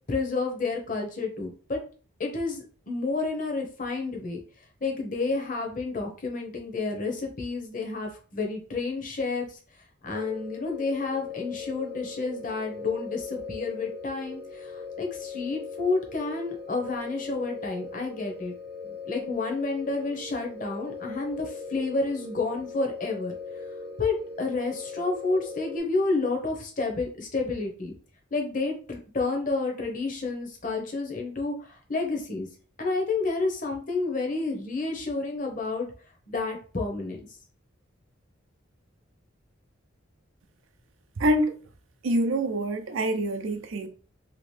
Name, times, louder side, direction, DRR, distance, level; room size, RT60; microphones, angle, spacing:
voice 1, 0.1-1.8 2.2-4.4 4.8-9.6 10.0-18.5 19.1-23.4 24.0-27.9 28.3-32.5 32.8-35.9 36.3-37.2, left 3 dB, 40° left, 0.8 m, -30 dB
sound 1, 10.1-25.8, left 4 dB, 45° right, 0.7 m, -39 dB
voice 2, 41.2-41.6 42.0-43.9, right 1 dB, 80° right, 0.5 m, -25 dB
2.9 x 2.9 x 3.2 m
head